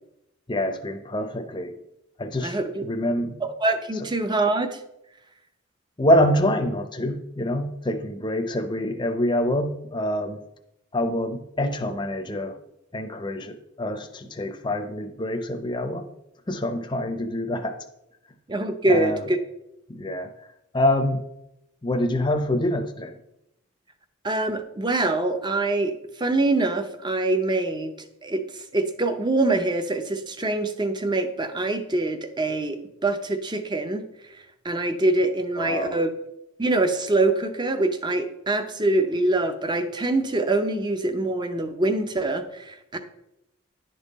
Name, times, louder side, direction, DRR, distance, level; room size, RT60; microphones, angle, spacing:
voice 1, 0.5-1.8 2.2-3.4 6.0-10.4 10.9-12.6 12.9-16.1 16.5-17.8 18.9-19.2 19.9-20.3 20.7-21.2 21.8-23.2 35.6-36.0, left 1 dB, 20° left, 6 dB, 0.7 m, -26 dB
voice 2, 2.4-2.8 3.4-4.8 18.5-19.4 24.2-27.9 28.2-34.0 34.6-36.1 36.6-43.0, right 2 dB, 20° right, 9 dB, 0.6 m, -24 dB
10.5 x 5.5 x 4.1 m, 0.84 s
head